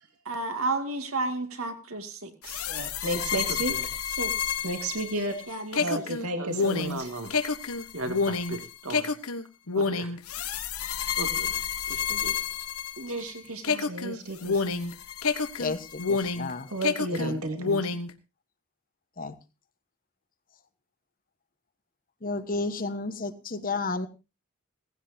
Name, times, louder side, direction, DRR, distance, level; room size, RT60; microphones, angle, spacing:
voice 1, 0.2-2.6 3.0-3.9 4.2-4.6 5.5-6.0 6.4-7.3 7.9-9.1 9.7-10.2 11.2-11.5 11.9-12.4 13.0-13.8, right 2 dB, 70° right, 6 dB, 2.3 m, -35 dB
sound 1, 2.4-13.3 13.6-16.5 16.8-18.1, left 5 dB, 75° left, 1.2 m, -29 dB
voice 2, 2.7-3.7 4.6-5.4 5.8-7.1 13.9-15.0 16.7-18.0, right 1 dB, 85° right, 5 dB, 2.2 m, -32 dB
voice 3, 15.6-16.7 17.1-17.7 19.2-19.4 22.2-24.1, left 3 dB, 40° left, 11 dB, 1.2 m, -32 dB
17.5 x 16.0 x 2.8 m, 0.27 s
head